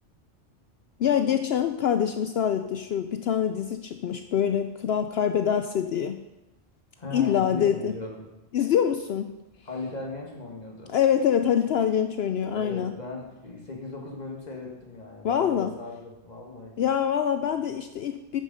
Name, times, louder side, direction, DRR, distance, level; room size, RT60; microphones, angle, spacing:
voice 1, 1.0-6.2 7.1-7.9 8.5-9.3 10.9-13.0 15.2-15.7 16.8-18.4, left 9 dB, 65° left, 8 dB, 0.7 m, -25 dB
voice 2, 7.0-8.3 9.7-10.9 12.5-16.8, left 3 dB, 35° left, 0 dB, 1.9 m, -38 dB
9.1 x 6.7 x 5.3 m, 1.0 s
omnidirectional pair, 1.3 m